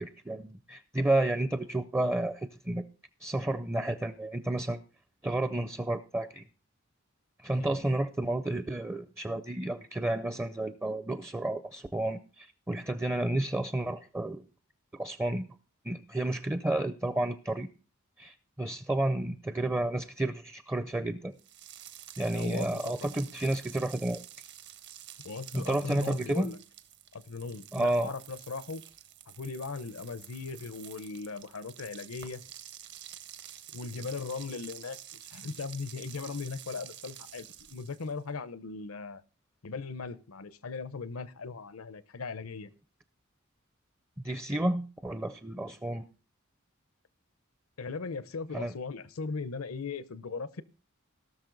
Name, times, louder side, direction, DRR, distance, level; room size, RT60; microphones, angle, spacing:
voice 1, 0.0-2.8 3.2-4.8 5.2-6.4 7.4-14.4 14.9-15.5 15.8-17.7 18.2-21.3 22.2-24.2 25.5-26.5 27.7-28.1 44.2-46.0 48.5-48.7, right 1 dB, 10° right, 12 dB, 0.4 m, -31 dB
sound 1, 21.4-38.2, right 11 dB, 55° right, 0.9 m, -49 dB
voice 2, 22.3-23.1 25.2-26.6 27.1-28.8 29.3-32.4 33.7-35.0 35.3-39.2 39.6-42.7 47.8-50.6, left 4 dB, 80° left, 16 dB, 0.7 m, -38 dB
18.0 x 6.3 x 3.9 m, 0.34 s
head